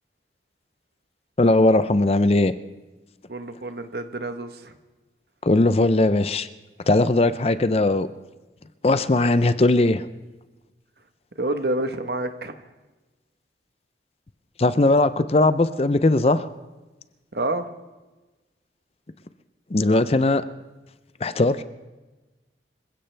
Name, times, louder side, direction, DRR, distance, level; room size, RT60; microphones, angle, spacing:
voice 1, 1.4-2.5 5.4-6.5 6.9-8.1 8.8-10.1 14.6-16.5 19.7-20.4 21.2-21.6, left 2 dB, 35° left, 13 dB, 0.5 m, -19 dB
voice 2, 3.3-4.7 11.4-12.5 17.3-17.7, right 2 dB, 60° right, 8 dB, 1.2 m, -28 dB
26.0 x 15.5 x 3.4 m, 1.2 s
head